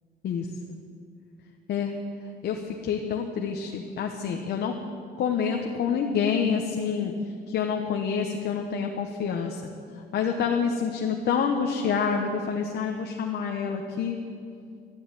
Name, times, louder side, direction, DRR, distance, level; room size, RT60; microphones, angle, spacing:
voice 1, 0.2-0.8 1.7-2.0 2.4-4.8 5.2-9.6 9.9-14.2, left 6 dB, 60° left, 2 dB, 1.1 m, -27 dB
12.5 x 10.0 x 9.7 m, 2.3 s
cardioid pair, 155°, 19 cm